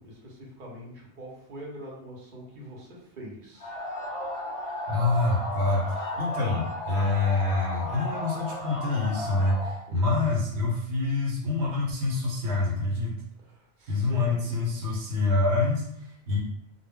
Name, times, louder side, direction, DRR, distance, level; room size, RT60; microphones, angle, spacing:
voice 1, 0.0-3.7 9.9-10.2 13.4-14.7, equal, 50° right, -2 dB, 0.8 m, -44 dB
sound 1, 3.6-9.8, left 1 dB, 40° left, 0.6 m, -34 dB
voice 2, 4.9-13.1 13.9-16.4, left 3 dB, 75° right, -2 dB, 1.0 m, -26 dB
2.1 x 2.1 x 3.4 m, 0.75 s
omnidirectional pair, 1.1 m